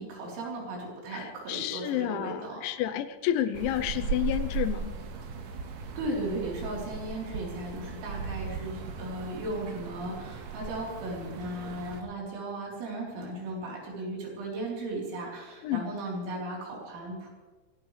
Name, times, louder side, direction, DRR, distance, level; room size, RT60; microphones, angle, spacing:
voice 1, 0.0-2.6 6.0-17.3, right 1 dB, 80° right, -3 dB, 6.2 m, -36 dB
voice 2, 1.1-4.9 15.6-15.8, left 12 dB, 85° left, 11 dB, 3.0 m, -30 dB
sound 1, 3.5-12.0, right 5 dB, 60° right, 2.3 m, -37 dB
24.0 x 17.0 x 3.3 m, 1.3 s
omnidirectional pair, 5.4 m